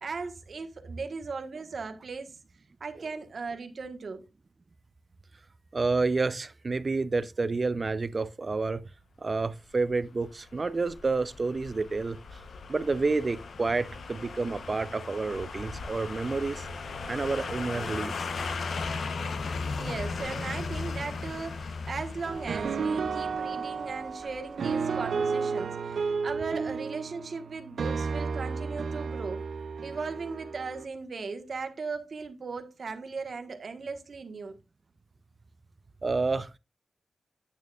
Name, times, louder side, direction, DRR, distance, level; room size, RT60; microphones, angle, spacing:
voice 1, 0.0-2.4 2.8-4.3 19.8-29.5 29.8-34.6, right 4 dB, 60° right, 1.3 m, -38 dB
voice 2, 5.7-8.8 9.2-12.2 12.7-16.7 17.1-18.3 36.0-36.6, right 3 dB, 40° right, 0.5 m, -29 dB
sound 1, 9.8-24.7 25.1-25.2, left 4 dB, 80° left, 0.8 m, -37 dB
sound 2, 22.2-30.9, right 5 dB, 80° right, 0.6 m, -32 dB
9.1 x 8.8 x 2.4 m
wide cardioid pair, 120°, 0 cm